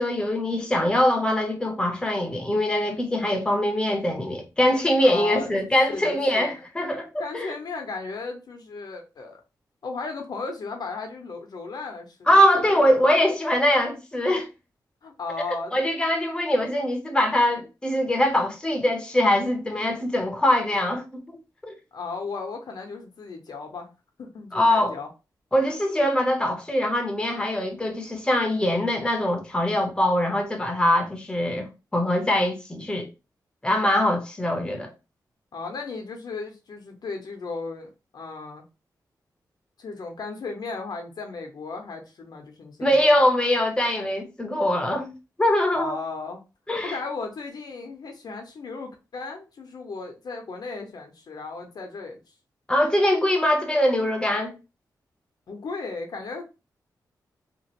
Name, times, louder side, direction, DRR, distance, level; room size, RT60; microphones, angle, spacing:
voice 1, 0.0-7.6 12.3-14.5 15.5-21.2 21.6-21.7 24.5-25.0 25.5-31.7 31.9-33.1 33.6-34.9 42.8-45.1 45.4-46.0 46.7-47.0 52.7-54.5, left 1 dB, 10° left, 0.8 m, -22 dB
voice 2, 5.0-5.5 5.9-6.5 7.2-9.4 9.8-12.9 15.0-15.8 21.9-23.9 24.2-25.1 35.5-38.6 39.8-43.1 45.7-46.4 46.8-52.2 55.5-56.4, left 4 dB, 65° left, 0.8 m, -35 dB
2.9 x 2.5 x 2.9 m
wide cardioid pair, 90°, 7 cm